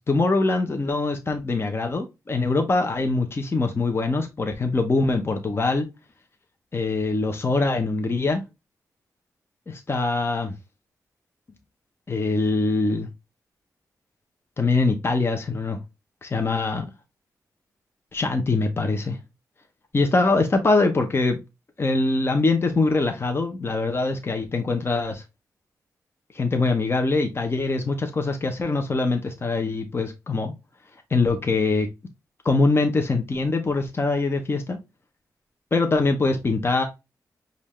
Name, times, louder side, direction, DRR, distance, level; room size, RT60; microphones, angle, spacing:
voice 1, 0.1-5.9 6.7-8.4 9.7-10.5 12.1-13.1 14.6-15.8 16.2-16.9 18.1-19.2 19.9-21.4 21.8-25.2 26.3-30.5 31.1-31.9 32.4-34.8 35.7-36.8, left 3 dB, 40° left, 0.9 m, -23 dB
5.4 x 2.7 x 3.1 m
cardioid pair, 75°, 6 cm